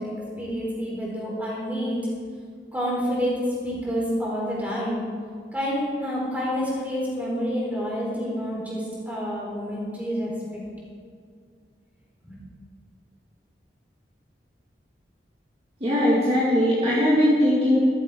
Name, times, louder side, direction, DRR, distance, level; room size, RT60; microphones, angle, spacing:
voice 1, 0.0-2.0 2.7-3.4 3.6-5.0 5.5-10.6 12.2-12.3, equal, 10° right, -5 dB, 4.1 m, -28 dB
voice 2, 15.8-17.8, equal, 35° right, -7 dB, 2.2 m, -20 dB
14.0 x 13.0 x 3.8 m, 2.1 s
head